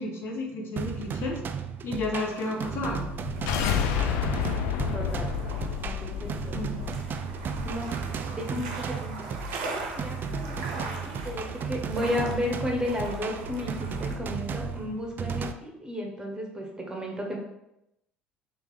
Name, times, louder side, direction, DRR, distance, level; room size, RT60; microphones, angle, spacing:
voice 1, 0.0-1.4 1.8-3.1 6.5-6.7, left 2 dB, 50° left, 0 dB, 0.9 m, -32 dB
sound 1, 0.8-15.5, right 6 dB, 40° right, 0.3 m, -35 dB
sound 2, 1.8-14.2, right 3 dB, 75° right, 0.7 m, -40 dB
sound 3, 3.0-8.2, left 8 dB, 70° left, 0.4 m, -30 dB
voice 2, 4.9-5.3 5.8-6.6 7.6-8.0 8.3-9.3 9.6-17.4, left 1 dB, 15° right, 0 dB, 1.2 m, -33 dB
3.4 x 3.3 x 3.3 m, 0.85 s
hypercardioid pair, 60°, 5 cm